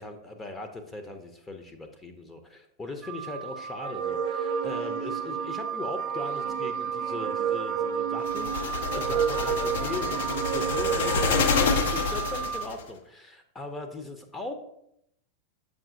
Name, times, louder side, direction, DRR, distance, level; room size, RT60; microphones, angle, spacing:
voice 1, 0.0-14.5, left 2 dB, 15° left, 6 dB, 0.7 m, -39 dB
Wind instrument woodwind instrument, 3.0-12.7, right 7 dB, 25° right, 0.8 m, -34 dB
sound 1, 3.7-11.9, right 8 dB, 50° right, 0.5 m, -31 dB
sound 2, 8.3-12.8, left 5 dB, 60° left, 0.6 m, -28 dB
7.4 x 5.0 x 2.6 m, 0.77 s
figure-of-eight pair, 90°, 0 cm